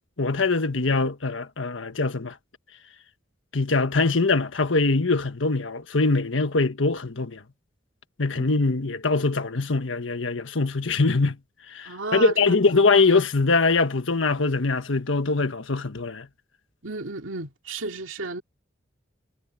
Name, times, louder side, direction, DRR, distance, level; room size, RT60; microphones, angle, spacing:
voice 1, 0.2-2.3 3.5-7.4 8.2-11.4 11.7-16.3, left 3 dB, 80° left, 1.4 m, -23 dB
voice 2, 11.8-12.8 16.8-18.4, right 3 dB, 90° right, 2.5 m, -33 dB
head